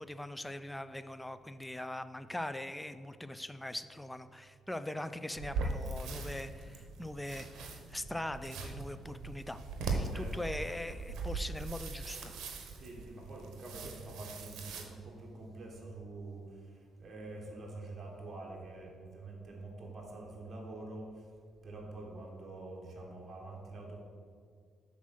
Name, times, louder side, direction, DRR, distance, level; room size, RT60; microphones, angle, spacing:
voice 1, 0.0-12.3, left 1 dB, 10° left, 12 dB, 0.3 m, -41 dB
sound 1, 5.3-14.8, right 3 dB, 80° right, 0.8 m, -40 dB
voice 2, 10.1-10.6 12.8-16.4 17.0-21.1 21.6-24.0, right 2 dB, 40° right, -2 dB, 1.5 m, -46 dB
6.2 x 4.1 x 6.1 m, 2.1 s
cardioid pair, 90°, 0 cm